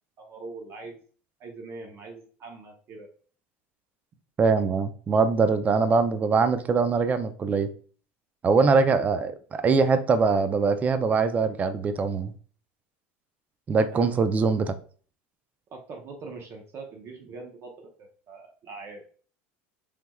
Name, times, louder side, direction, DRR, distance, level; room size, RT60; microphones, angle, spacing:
voice 1, 0.2-1.0 1.4-3.1 13.9-14.2 15.7-19.0, right 3 dB, 45° right, 2 dB, 0.7 m, -42 dB
voice 2, 4.4-7.7 8.4-12.3 13.7-14.7, right 4 dB, 25° right, 10 dB, 0.3 m, -22 dB
3.3 x 3.0 x 2.2 m, 0.43 s
supercardioid pair, 110°, 6 cm